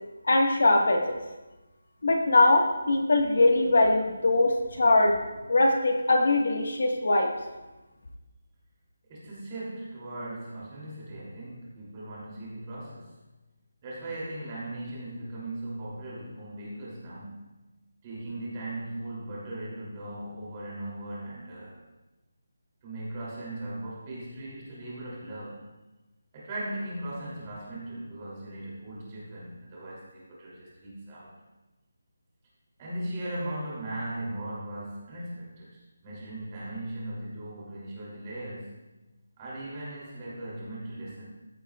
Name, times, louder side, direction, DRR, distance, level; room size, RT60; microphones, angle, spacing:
voice 1, 0.3-1.2 2.0-5.1 5.5-7.3, left 2 dB, 65° left, 2 dB, 1.6 m, -22 dB
voice 2, 9.1-13.1 13.8-17.5 18.0-21.8 22.8-25.6 26.3-31.3 32.8-35.7 36.0-38.8 39.4-41.2, right 1 dB, 20° right, -7 dB, 3.2 m, -38 dB
15.0 x 9.9 x 2.5 m, 1.1 s
figure-of-eight pair, 175°, 0 cm